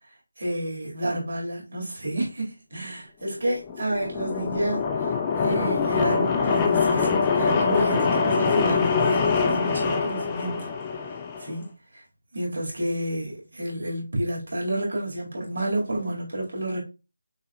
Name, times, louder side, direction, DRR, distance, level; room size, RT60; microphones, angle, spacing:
voice 1, 0.4-10.7 11.4-12.0 12.3-16.8, right 1 dB, 65° right, 1.9 m, -30 dB
sound 1, 3.6-11.5, left 5 dB, 15° left, 0.3 m, -24 dB
6.0 x 2.2 x 2.3 m
figure-of-eight pair, 165°, 0 cm